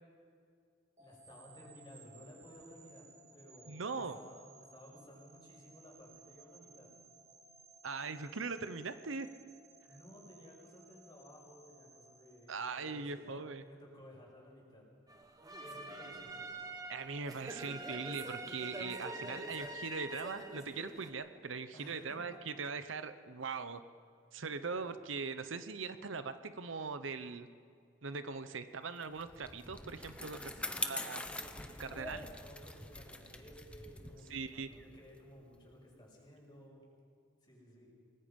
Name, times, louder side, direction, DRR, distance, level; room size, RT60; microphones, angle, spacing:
voice 1, 1.0-6.9 9.8-14.8 15.6-16.3 21.7-22.2 30.5-36.8 37.4-37.9, equal, 25° left, -3 dB, 6.6 m, -56 dB
sound 1, 1.0-13.1, right 3 dB, 35° right, 2.1 m, -60 dB
voice 2, 3.7-4.2 7.8-9.3 12.5-13.6 16.9-23.8 24.3-27.5 28.0-30.5 30.8-31.2 31.8-32.3 34.3-34.7, right 4 dB, 75° right, 11 dB, 0.9 m, -41 dB
sound 2, 15.1-21.1, right 2 dB, 20° right, 1.5 m, -45 dB
Bicycle, 29.0-35.7, left 2 dB, 5° left, 1.0 m, -44 dB
28.0 x 19.5 x 5.4 m, 2.3 s
head